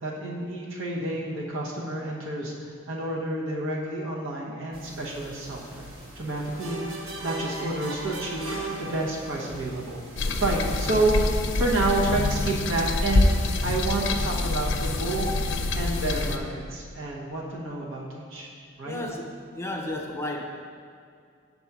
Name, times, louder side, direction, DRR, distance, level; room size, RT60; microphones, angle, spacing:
voice 1, 0.0-2.5 2.9-5.9 6.1-6.9 7.2-8.5 8.8-10.0 10.4-11.2 11.6-13.3 13.6-15.3 15.7-18.5 18.8-19.0, right 2 dB, 65° right, -4 dB, 1.1 m, -29 dB
sound 1, 4.7-13.4, equal, 45° right, 1.2 m, -46 dB
sound 2, 6.6-9.5, right 2 dB, 90° right, 1.0 m, -36 dB
sound 3, 10.2-16.4, left 2 dB, 60° left, 0.5 m, -26 dB
voice 2, 18.8-19.2 19.5-20.5, left 1 dB, 15° left, 1 dB, 0.6 m, -32 dB
7.0 x 4.1 x 6.0 m, 2.3 s
head